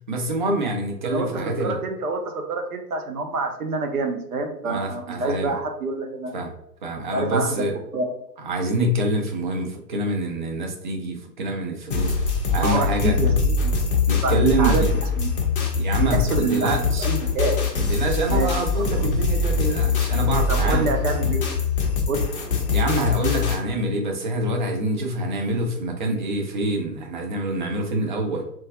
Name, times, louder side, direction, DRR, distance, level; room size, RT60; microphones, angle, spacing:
voice 1, 0.1-1.8 4.6-5.6 6.3-6.5 6.8-7.7 8.4-12.2 12.5-13.2 14.1-14.9 15.8-17.1 17.7-20.9 22.7-28.4, right 1 dB, 30° right, 2 dB, 0.4 m, -26 dB
voice 2, 1.0-6.4 7.1-7.6 7.9-8.2 12.6-13.7 14.2-14.3 14.6-14.8 15.2-15.3 16.1-17.6 18.3-18.5 18.7-19.1 20.5-21.4 22.1-22.3, right 3 dB, 60° right, 4 dB, 0.8 m, -27 dB
sound 1, 11.9-23.6, left 4 dB, 35° left, 0.5 m, -23 dB
3.7 x 2.4 x 2.6 m, 0.77 s
figure-of-eight pair, 115°, 49 cm